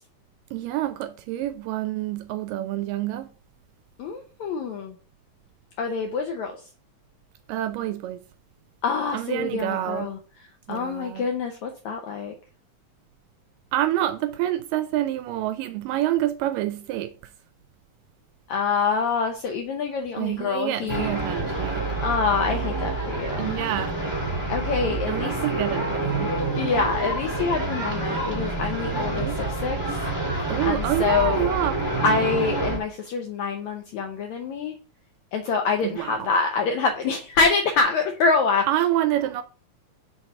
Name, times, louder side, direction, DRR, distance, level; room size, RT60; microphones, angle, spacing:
voice 1, 0.5-3.3 7.5-8.2 9.1-10.1 10.7-11.3 13.7-17.1 20.2-21.9 23.4-23.9 25.1-26.4 28.9-29.4 30.5-31.8 35.8-36.3 38.7-39.4, right 13 dB, 80° right, 2.0 m, -27 dB
voice 2, 4.0-4.9 5.8-6.6 8.8-10.2 10.7-12.3 18.5-21.1 22.0-23.6 24.5-25.4 26.6-30.0 30.6-31.5 32.0-34.7 35.3-38.9, left 4 dB, 80° left, 1.7 m, -26 dB
sound 1, 20.9-32.8, right 2 dB, 10° right, 1.4 m, -27 dB
5.9 x 4.5 x 5.3 m
omnidirectional pair, 4.2 m